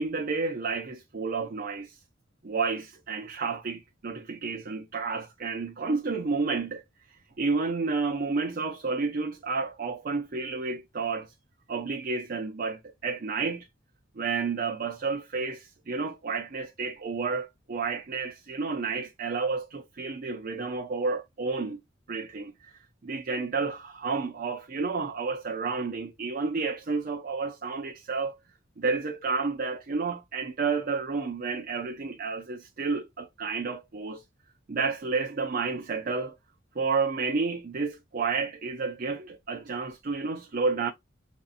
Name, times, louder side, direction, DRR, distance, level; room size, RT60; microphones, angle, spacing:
voice 1, 0.0-2.0 2.4-6.8 7.1-11.3 11.7-13.7 14.2-21.8 22.1-22.7 23.0-28.4 28.8-34.2 34.7-36.4 36.7-40.9, right 4 dB, 50° right, 0.6 m, -31 dB
5.1 x 2.6 x 2.5 m
head